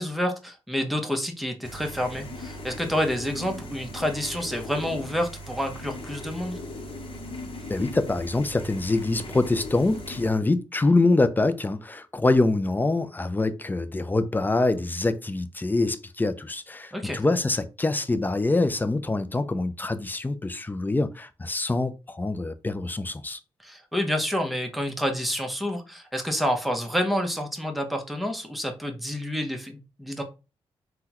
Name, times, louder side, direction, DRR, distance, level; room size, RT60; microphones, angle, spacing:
voice 1, 0.0-6.6 16.9-17.2 23.6-30.2, equal, ahead, 0.9 m, -28 dB
sound 1, 1.6-10.3, left 1 dB, 55° left, 0.9 m, -39 dB
voice 2, 7.7-23.4, left 2 dB, 15° left, 0.4 m, -25 dB
3.5 x 2.3 x 2.9 m
supercardioid pair, 55°, 10 cm